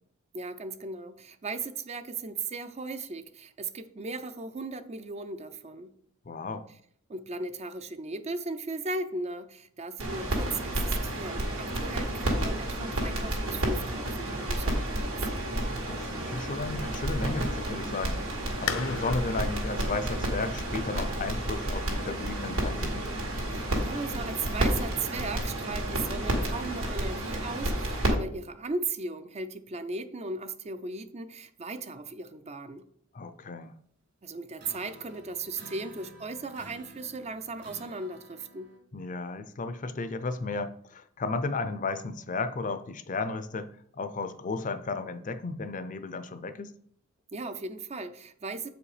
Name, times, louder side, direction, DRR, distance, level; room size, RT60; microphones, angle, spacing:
voice 1, 0.3-5.9 7.1-15.5 23.5-32.9 34.2-38.7 47.3-48.7, right 3 dB, 30° right, 0.5 m, -37 dB
voice 2, 6.3-6.7 15.9-18.2 18.6-23.1 33.1-33.7 38.9-46.7, left 3 dB, 40° left, 0.5 m, -34 dB
sound 1, 10.0-28.1, right 1 dB, 75° right, 2.1 m, -31 dB
sound 2, 18.7-24.1, left 7 dB, 70° left, 0.7 m, -40 dB
sound 3, 34.6-38.8, right 1 dB, 55° right, 2.3 m, -51 dB
7.7 x 5.1 x 4.9 m
head